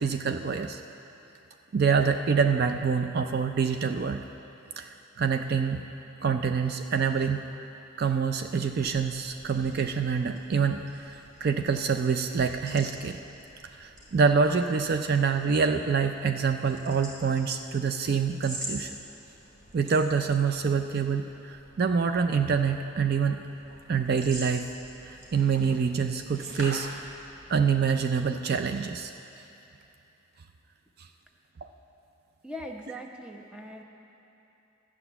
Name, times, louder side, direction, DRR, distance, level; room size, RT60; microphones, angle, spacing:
voice 1, 0.0-0.8 1.7-4.2 4.8-5.8 6.2-7.5 8.0-13.2 13.6-19.0 19.7-23.4 23.9-24.7 25.0-27.0 27.5-29.1 31.0-31.1, right 5 dB, 50° right, 7 dB, 0.4 m, -26 dB
sound 1, 8.7-27.5, right 1 dB, 80° right, 3.0 m, -46 dB
voice 2, 32.4-33.8, equal, 5° right, 1 dB, 0.8 m, -40 dB
12.0 x 8.7 x 6.9 m, 2.9 s
head